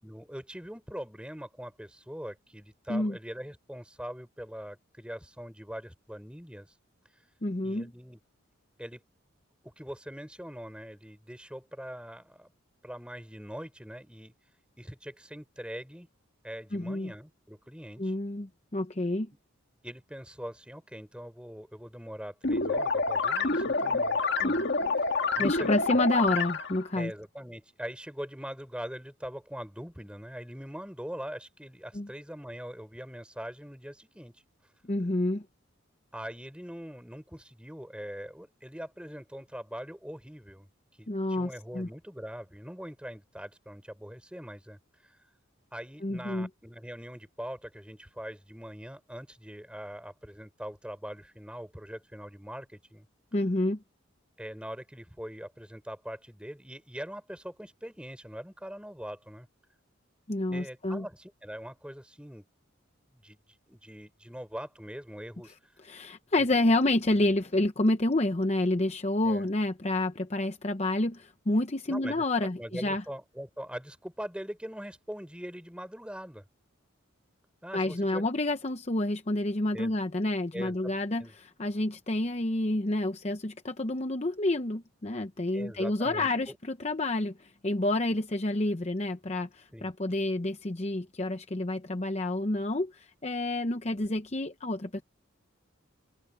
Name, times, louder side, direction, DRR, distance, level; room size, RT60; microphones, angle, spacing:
voice 1, 0.0-6.7 7.6-8.2 8.8-9.0 9.6-12.5 12.8-14.3 14.8-16.1 16.4-18.1 19.8-24.7 25.4-25.7 26.9-34.3 36.1-40.7 41.0-45.2 45.7-53.1 54.4-59.5 60.5-62.5 63.2-63.4 63.7-65.5 69.2-69.5 71.9-76.4 77.6-78.2 79.7-79.9 80.5-80.9 81.2-81.3 85.5-86.6 89.7-89.9, equal, 5° right, 4.0 m, -42 dB
voice 2, 7.4-7.9 16.7-17.1 18.0-19.3 23.9-24.0 24.4-24.5 25.4-27.1 31.9-32.1 34.9-35.4 41.1-41.9 46.0-46.5 53.3-53.8 60.3-61.0 65.8-73.0 77.7-95.0, left 2 dB, 30° left, 0.8 m, -29 dB
sound 1, 22.4-26.8, left 3 dB, 55° left, 2.0 m, -27 dB
head